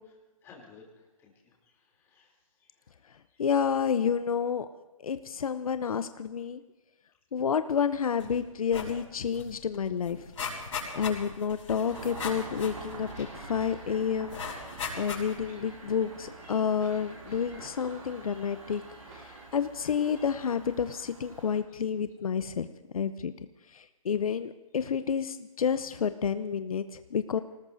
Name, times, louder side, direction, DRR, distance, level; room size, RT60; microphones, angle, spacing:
voice 1, 0.4-3.4 18.9-19.6 21.7-21.8, left 4 dB, 15° left, -2 dB, 3.1 m, -58 dB
voice 2, 3.4-4.7 5.0-6.6 7.3-10.2 10.9-14.4 15.0-18.8 19.5-22.7 22.9-23.3 23.7-27.4, left 7 dB, 75° left, 11 dB, 0.7 m, -29 dB
sound 1, 8.2-8.4 8.7-9.0 9.3-9.4 9.7-13.7 14.3-15.5 16.0-16.1, left 5 dB, 60° left, 6.2 m, -38 dB
Engine starting, 11.9-21.6, right 4 dB, 70° right, 6.3 m, -46 dB
sound 2, 13.1-20.5, right 1 dB, 15° right, 3.5 m, -56 dB
24.0 x 19.5 x 2.7 m, 1.1 s
hypercardioid pair, 160°, 18 cm